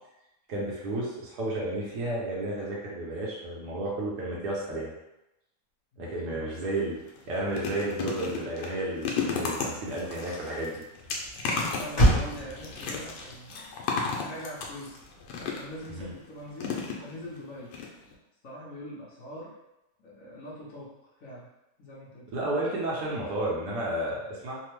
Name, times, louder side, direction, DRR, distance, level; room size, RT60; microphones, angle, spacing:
voice 1, 0.5-4.9 6.0-7.0 7.3-10.8 15.9-16.1 22.3-24.6, right 1 dB, 75° right, -4 dB, 1.3 m, -32 dB
voice 2, 5.9-6.5 11.4-13.7 14.2-15.0 15.4-17.7 18.4-19.5 20.0-21.5 21.8-22.4, equal, 60° left, -6 dB, 1.0 m, -43 dB
sound 1, 6.5-6.7 7.1-15.9 16.6-17.4 17.7-17.9 18.1-18.2, left 5 dB, 85° left, 1.2 m, -34 dB
Motor vehicle (road), 8.9-16.5, equal, 40° left, 0.7 m, -32 dB
3.4 x 2.1 x 3.1 m, 0.92 s
omnidirectional pair, 1.8 m